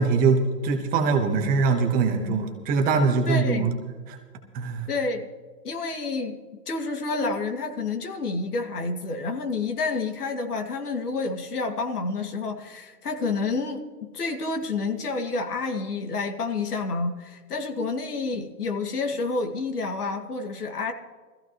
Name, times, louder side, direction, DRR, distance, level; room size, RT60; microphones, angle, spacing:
voice 1, 0.0-3.7 4.1-4.2 4.5-4.9, right 4 dB, 20° right, 3 dB, 1.2 m, -22 dB
voice 2, 3.3-3.7 4.9-5.3 5.6-6.4 6.7-20.9, left 3 dB, 70° left, 4 dB, 2.3 m, -29 dB
20.5 x 15.0 x 3.1 m, 1.4 s
hypercardioid pair, 140°, 47 cm